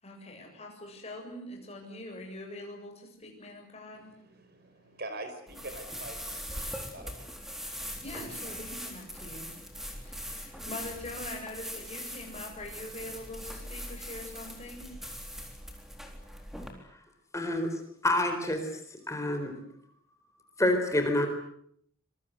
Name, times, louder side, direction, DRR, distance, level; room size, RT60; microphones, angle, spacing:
voice 1, 0.0-4.1 8.0-9.6 10.0-15.2, left 1 dB, 30° left, 1 dB, 7.7 m, -43 dB
voice 2, 4.0-6.4 6.9-7.3, right 2 dB, 50° right, 7 dB, 5.6 m, -43 dB
sound 1, 5.5-16.7, equal, ahead, 4.0 m, -41 dB
voice 3, 17.3-17.7 18.0-18.6 19.1-19.6 20.6-21.3, left 1 dB, 15° left, 6 dB, 4.1 m, -27 dB
26.0 x 23.0 x 8.2 m, 0.67 s
head